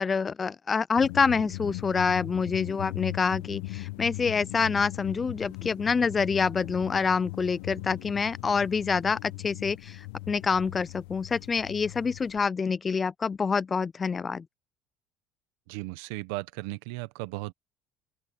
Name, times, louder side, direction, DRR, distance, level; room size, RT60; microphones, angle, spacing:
voice 1, 0.0-14.5, left 5 dB, 25° left, 0.4 m, -27 dB
sound 1, 1.0-12.5, left 20 dB, 90° left, 0.8 m, -39 dB
voice 2, 15.7-17.5, right 21 dB, 90° right, 1.0 m, -36 dB
open air
cardioid pair, 110°, 0 cm